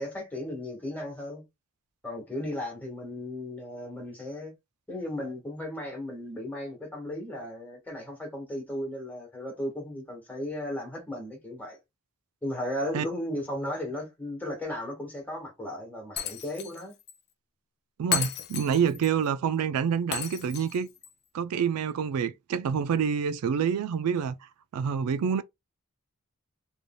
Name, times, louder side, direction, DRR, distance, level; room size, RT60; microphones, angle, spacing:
voice 1, 0.0-1.4 2.0-4.5 4.9-11.8 12.4-16.9, left 1 dB, 10° left, 1.3 m, -35 dB
Shatter, 16.2-16.8 17.1-17.2 18.1-19.1 20.1-21.1, left 9 dB, 45° left, 0.5 m, -33 dB
voice 2, 18.0-20.9 21.3-24.4 24.7-25.4, right 7 dB, 85° right, 0.3 m, -27 dB
3.2 x 2.6 x 2.2 m
head